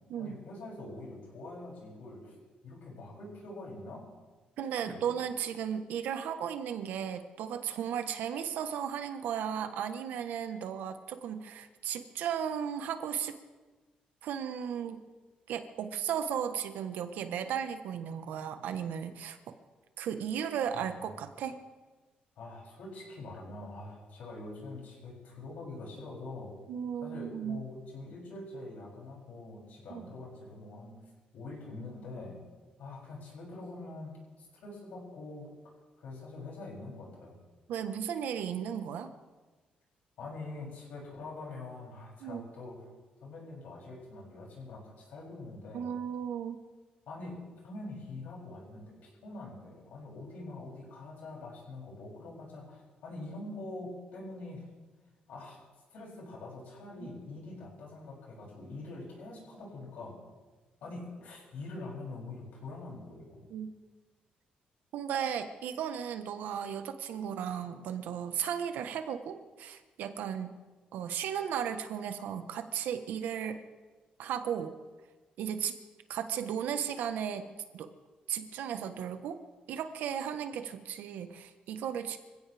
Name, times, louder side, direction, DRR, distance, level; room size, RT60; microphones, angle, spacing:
voice 1, 0.2-2.3 2.6-4.1 4.8-5.1 20.7-21.0 22.4-26.5 27.0-31.0 31.3-32.4 32.8-37.4 40.2-42.9 43.2-45.9 47.1-47.4 47.6-54.7 55.3-55.6 55.9-60.2 60.8-63.4, left 2 dB, 65° left, -3 dB, 7.5 m, -44 dB
voice 2, 4.6-13.4 14.2-15.0 15.5-19.4 20.0-21.6 26.7-27.6 29.9-30.0 37.7-39.1 42.2-42.4 45.7-46.6 57.0-57.1 63.5-63.7 64.9-70.6 70.9-73.6 74.2-74.7 75.4-75.7 76.1-77.5 77.7-77.9 78.3-79.4 79.7-82.2, right 8 dB, 80° right, 8 dB, 1.2 m, -35 dB
25.5 x 16.0 x 3.5 m, 1.3 s
cardioid pair, 150°, 3 cm